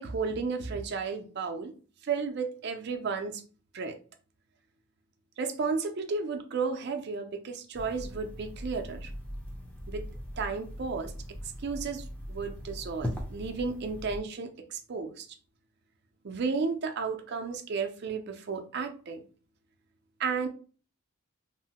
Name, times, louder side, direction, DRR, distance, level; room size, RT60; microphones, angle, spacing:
voice 1, 0.0-1.7 2.0-3.4 3.7-4.0 5.4-9.1 9.9-10.0 10.4-11.1 11.6-15.3 16.2-19.2 20.2-20.5, right 5 dB, 50° right, 0.4 m, -33 dB
sound 1, 7.7-14.2, equal, 5° left, 0.5 m, -40 dB
3.0 x 2.1 x 2.8 m
head